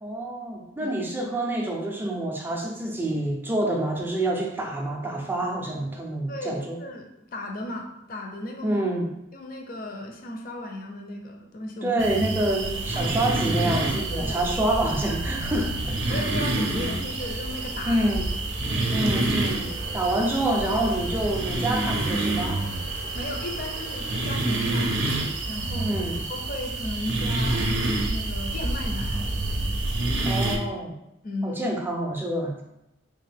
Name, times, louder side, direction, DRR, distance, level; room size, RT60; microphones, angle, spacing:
voice 1, 0.0-6.8 8.6-9.1 11.8-16.2 17.9-18.3 18.9-22.7 25.8-26.2 30.2-30.9 31.4-32.6, right 1 dB, 10° right, 0 dB, 0.4 m, -27 dB
voice 2, 6.3-8.8 9.3-12.0 12.9-13.1 14.1-14.4 16.1-18.0 18.7-19.0 23.1-25.1 25.5-27.7 28.1-29.3 30.1-30.4 31.2-31.6, left 1 dB, 45° left, 2 dB, 0.5 m, -35 dB
sound 1, 12.0-30.6, right 2 dB, 65° right, 0.5 m, -28 dB
sound 2, 12.8-24.4, equal, 80° left, 1.0 m, -45 dB
3.5 x 2.5 x 3.3 m, 0.84 s
head